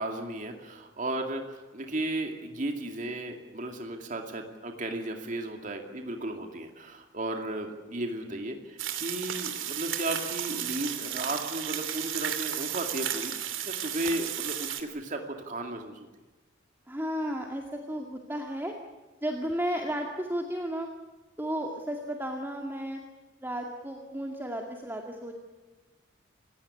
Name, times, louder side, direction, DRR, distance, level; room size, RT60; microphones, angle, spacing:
voice 1, 0.0-16.1, right 1 dB, 40° right, 3 dB, 2.4 m, -35 dB
sound 1, 8.8-14.8, right 10 dB, 85° right, 2.8 m, -33 dB
voice 2, 16.9-18.8 19.2-20.9 21.4-23.0 23.4-25.3, equal, 10° right, 1 dB, 2.1 m, -33 dB
28.5 x 16.5 x 9.7 m, 1.2 s
head